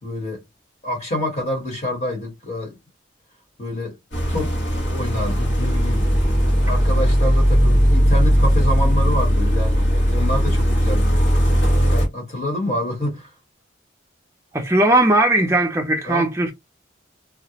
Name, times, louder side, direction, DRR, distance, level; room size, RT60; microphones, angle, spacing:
voice 1, 0.0-0.4 0.8-2.7 3.6-3.9 4.3-4.6 4.8-6.0 6.6-11.2 11.8-13.3 16.0-16.2, left 1 dB, 35° left, 1.1 m, -27 dB
sound 1, 4.1-12.1, equal, 65° left, 1.1 m, -18 dB
voice 2, 14.5-16.5, right 1 dB, 15° right, 0.5 m, -18 dB
2.4 x 2.1 x 2.8 m
head